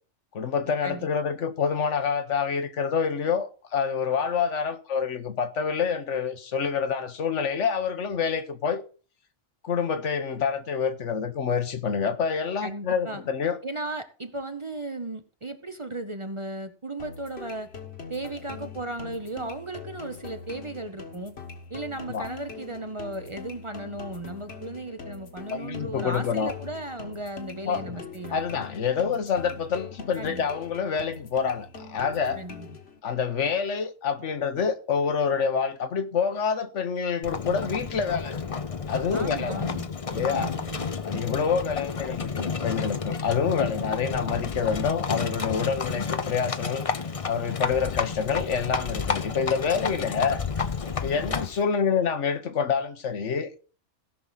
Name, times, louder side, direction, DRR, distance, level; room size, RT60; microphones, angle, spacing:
voice 1, 0.3-8.8 9.6-13.6 22.1-22.3 25.5-26.5 27.7-28.0 28.3-32.4 33.0-38.6 38.9-39.6 40.1-40.5 41.0-46.9 47.2-50.4 51.0-53.5, left 6 dB, 80° left, 1.3 m, -27 dB
voice 2, 12.6-13.2 13.6-17.7 18.1-21.3 21.7-28.4 30.1-30.5 32.3-32.7 39.1-39.9 40.2-40.9, right 2 dB, 30° right, 0.7 m, -36 dB
sound 1, 17.0-33.0, left 5 dB, 60° left, 1.7 m, -42 dB
Livestock farm animals working animals, 37.2-51.6, left 5 dB, 35° left, 0.7 m, -31 dB
17.0 x 6.1 x 4.0 m
omnidirectional pair, 1.2 m